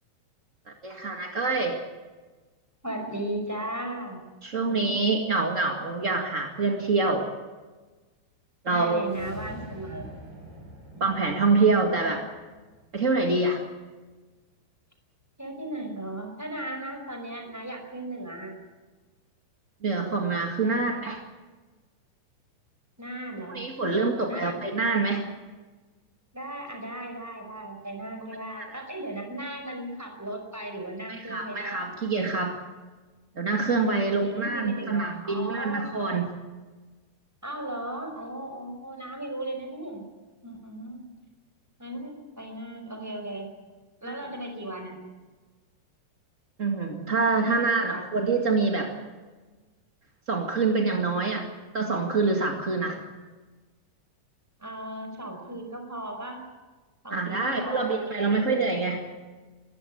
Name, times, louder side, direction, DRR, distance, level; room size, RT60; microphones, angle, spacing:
voice 1, 0.8-1.8 4.4-7.3 8.6-9.1 11.0-12.2 12.9-13.6 19.8-21.2 23.5-25.2 28.4-28.8 31.1-32.6 33.3-36.3 44.0-44.1 46.6-48.9 50.3-51.5 51.7-53.0 57.1-59.1, right 3 dB, 45° right, 1 dB, 1.0 m, -26 dB
voice 2, 2.8-4.2 4.7-4.9 8.6-10.1 10.9-11.1 12.1-12.2 15.4-18.5 20.6-21.1 23.0-23.7 23.9-24.8 26.3-31.8 33.9-36.2 37.4-40.0 40.4-41.1 41.8-43.5 44.0-45.0 47.3-48.1 54.6-56.4 57.0-58.6, right 1 dB, 5° right, 3 dB, 4.5 m, -37 dB
sound 1, 9.0-13.4, right 1 dB, 90° right, 9.8 m, -45 dB
24.5 x 14.5 x 8.6 m, 1.3 s
omnidirectional pair, 5.0 m